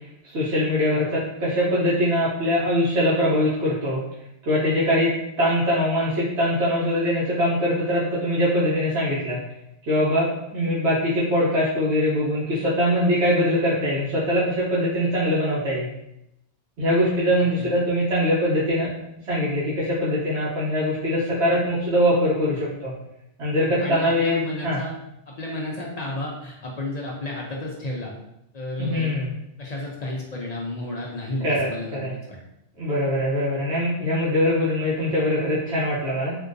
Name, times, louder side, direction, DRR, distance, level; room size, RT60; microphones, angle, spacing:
voice 1, 0.2-4.0 4.5-9.4 9.9-15.9 16.8-18.9 19.2-22.9 23.4-24.8 28.8-29.3 31.4-31.7 32.0-32.1 32.8-36.3, equal, 90° right, -8 dB, 1.1 m, -22 dB
voice 2, 23.6-25.0 25.3-28.1 28.5-29.2 29.6-32.0 32.3-32.4, left 1 dB, 50° left, -2 dB, 0.5 m, -32 dB
3.7 x 2.6 x 2.5 m, 0.83 s
omnidirectional pair, 1.1 m